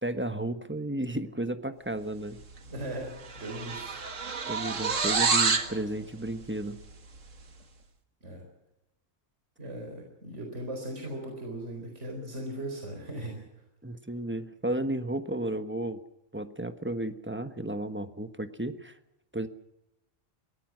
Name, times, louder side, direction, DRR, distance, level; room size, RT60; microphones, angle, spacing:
voice 1, 0.0-2.4 4.5-6.8 13.8-16.0 16.3-19.0 19.3-19.5, right 1 dB, 10° right, 9 dB, 1.1 m, -33 dB
sound 1, 2.6-2.8 3.0-5.7, right 5 dB, 85° right, 2.2 m, -28 dB
voice 2, 2.7-4.0 8.2-8.4 9.6-13.4, right 1 dB, 65° right, 2 dB, 4.6 m, -38 dB
23.0 x 18.0 x 6.3 m, 0.88 s
omnidirectional pair, 1.3 m